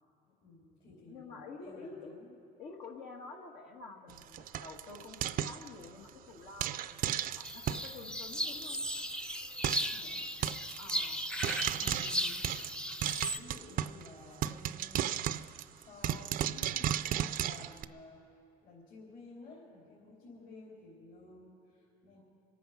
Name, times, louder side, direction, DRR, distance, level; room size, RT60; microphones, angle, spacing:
voice 1, 0.4-2.3 9.9-10.2 11.7-12.7 13.2-15.3 15.8-18.2 18.6-22.2, left 2 dB, 65° left, -6 dB, 3.7 m, -53 dB
voice 2, 1.1-2.2 2.6-8.8 10.8-11.3, left 3 dB, 85° left, 0 dB, 1.7 m, -49 dB
Frying (food), 4.1-6.1 6.6-7.9 8.3-8.4 8.6-8.8 9.0-9.1 9.6-10.0 10.4-10.9 11.4-14.1 14.4-17.8, right 11 dB, 55° right, 0.4 m, -34 dB
sound 1, 7.4-13.4, equal, 5° left, 0.5 m, -36 dB
26.0 x 9.2 x 5.9 m, 2.7 s
cardioid pair, 110°, 17 cm